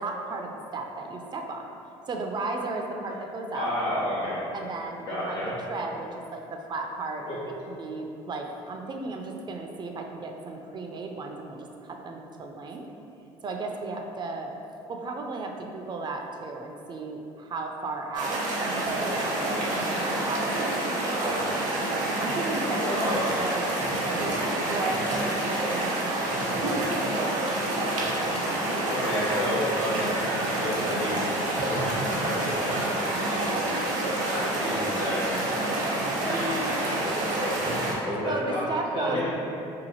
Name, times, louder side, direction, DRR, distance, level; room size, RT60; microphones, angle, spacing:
voice 1, 0.0-1.7 2.1-3.7 4.5-5.4 5.7-12.8 13.4-14.5 14.9-18.4 18.9-20.7 21.1-21.4 22.2-23.6 24.1-26.2 26.5-26.9 28.4-29.6 38.3-39.2, right 3 dB, 30° right, 2 dB, 0.3 m, -35 dB
voice 2, 3.5-4.4 5.1-5.5 7.3-7.4 21.2-21.3 22.8-23.4 28.9-31.2 31.6-33.5 34.2-35.2 36.2-36.6 37.0-37.7 38.0-38.6 38.9-39.2, left 1 dB, 85° left, -9 dB, 1.2 m, -31 dB
sound 1, 18.1-37.9, right 1 dB, 60° right, 0.7 m, -28 dB
2.8 x 2.5 x 2.8 m, 2.8 s
hypercardioid pair, 70°, 14 cm